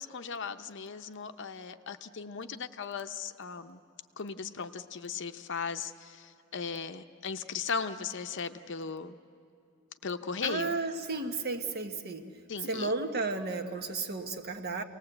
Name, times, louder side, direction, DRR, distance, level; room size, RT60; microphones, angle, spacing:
voice 1, 0.0-3.8 4.2-9.1 10.0-10.7 12.5-12.9, left 5 dB, 60° left, 9 dB, 0.7 m, -37 dB
voice 2, 10.4-12.3 12.7-14.8, right 3 dB, 50° right, 6 dB, 1.2 m, -33 dB
27.5 x 19.0 x 7.9 m, 2.4 s
head